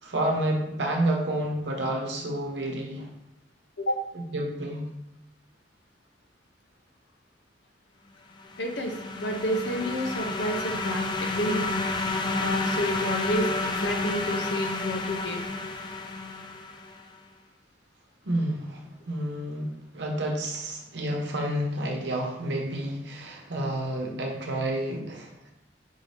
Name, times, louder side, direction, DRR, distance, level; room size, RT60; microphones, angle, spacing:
voice 1, 0.0-3.1 4.1-4.9 18.2-25.5, right 1 dB, 70° right, 1 dB, 0.9 m, -30 dB
sound 1, 8.4-17.0, left 3 dB, 25° left, 0.3 m, -30 dB
voice 2, 8.6-11.8 12.4-15.4, equal, 70° left, 3 dB, 0.7 m, -30 dB
5.4 x 2.7 x 3.4 m, 0.94 s
head